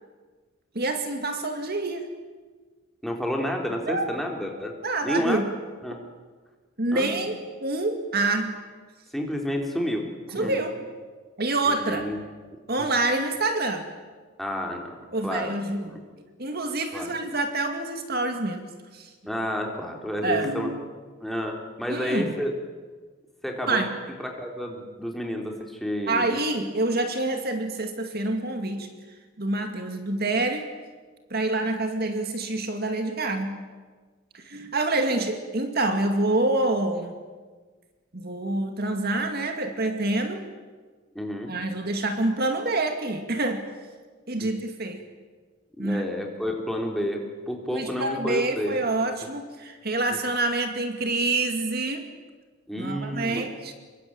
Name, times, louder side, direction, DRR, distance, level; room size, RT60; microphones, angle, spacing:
voice 1, 0.7-2.1 3.9-4.1 4.8-5.4 6.8-7.3 7.6-8.5 10.3-10.8 11.4-12.1 12.7-13.9 15.1-16.0 16.4-19.1 20.2-20.8 21.9-22.4 23.7-24.0 26.1-28.9 29.4-30.7 31.3-33.6 34.3-37.2 38.1-40.4 41.5-43.6 44.3-45.0 45.8-46.0 47.7-52.0 52.8-53.7, right 2 dB, 45° right, 6 dB, 2.2 m, -27 dB
voice 2, 3.0-4.7 5.0-5.4 5.8-6.0 6.9-7.2 9.1-10.6 11.7-12.2 12.8-12.9 14.4-15.0 15.2-15.5 15.8-16.0 16.9-17.1 19.2-20.7 21.2-22.5 23.4-23.9 24.2-26.4 41.2-41.5 44.4-44.5 45.8-47.2 47.5-48.8 52.7-53.5, equal, ahead, 1 dB, 3.5 m, -30 dB
26.5 x 22.5 x 8.8 m, 1.4 s
head